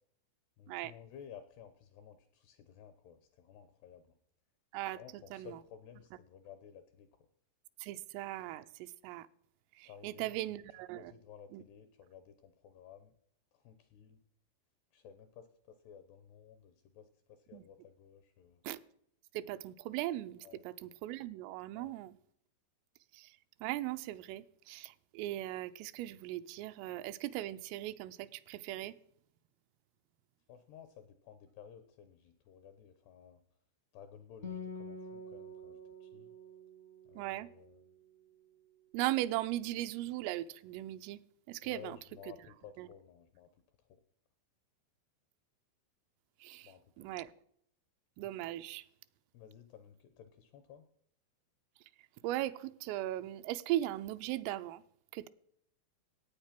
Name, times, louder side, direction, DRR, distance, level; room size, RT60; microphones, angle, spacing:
voice 1, 0.6-4.2 5.0-7.1 9.9-10.6 11.0-13.1 13.5-14.2 14.9-18.6 20.4-20.6 21.8-22.0 30.5-33.4 33.9-36.3 37.1-37.9 41.6-43.5 46.6-46.8 49.3-50.9, left 8 dB, 80° left, 2.4 m, -55 dB
voice 2, 7.8-9.3 9.8-11.1 11.5-11.6 17.5-17.6 18.6-18.8 19.3-22.2 23.1-23.3 23.6-29.0 37.2-37.5 38.9-41.2 41.5-42.0 42.8-42.9 46.4-46.7 47.0-47.3 48.2-48.8 52.2-54.8 55.1-55.3, right 15 dB, 90° right, 3.3 m, -38 dB
Acoustic guitar, 34.4-38.2, left 2 dB, 65° left, 0.7 m, -47 dB
17.0 x 8.9 x 5.8 m
omnidirectional pair, 5.7 m